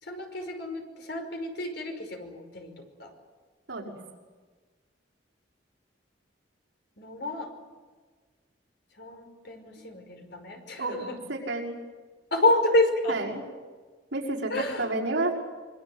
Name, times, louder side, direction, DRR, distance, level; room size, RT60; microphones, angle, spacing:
voice 1, 0.0-3.1 7.0-7.5 9.0-11.2 12.3-13.2 14.5-14.9, left 1 dB, 65° left, 5 dB, 5.4 m, -29 dB
voice 2, 11.3-11.8 13.1-13.4 14.1-15.3, right 2 dB, 70° right, -3 dB, 5.9 m, -30 dB
26.0 x 24.5 x 8.1 m, 1.4 s
head